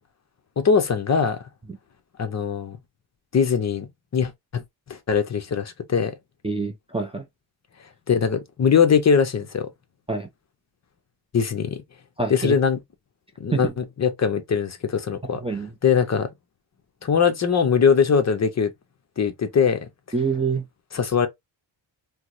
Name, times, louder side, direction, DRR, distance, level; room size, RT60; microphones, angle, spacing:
voice 1, 0.6-1.4 2.2-2.8 3.3-3.9 4.1-4.6 4.9-6.1 8.1-9.7 11.3-11.8 12.3-12.8 13.4-15.4 15.8-16.3 17.0-18.7 19.2-19.8 20.9-21.3, left 6 dB, 35° left, 0.6 m, -21 dB
voice 2, 6.4-7.3 10.1-10.3 12.2-12.6 13.5-13.7 15.4-15.7 20.1-20.6, right 4 dB, 15° right, 0.4 m, -26 dB
4.5 x 2.0 x 2.5 m
cardioid pair, 120°, 47 cm